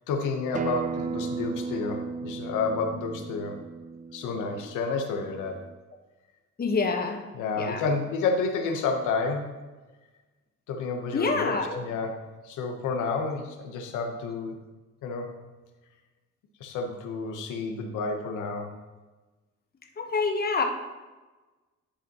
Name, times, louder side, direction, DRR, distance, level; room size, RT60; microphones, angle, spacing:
voice 1, 0.1-3.6 4.1-5.6 7.3-9.5 10.7-12.2 12.4-14.6 15.0-15.3 16.6-18.7, left 4 dB, 90° left, 3 dB, 0.9 m, -30 dB
Acoustic guitar, 0.5-5.7, right 5 dB, 25° right, 0.3 m, -35 dB
voice 2, 6.6-7.2 7.6-7.8 11.1-11.9 20.0-20.6, left 4 dB, 30° left, 3 dB, 1.0 m, -27 dB
11.0 x 4.9 x 2.9 m, 1.2 s
cardioid pair, 90°, 30 cm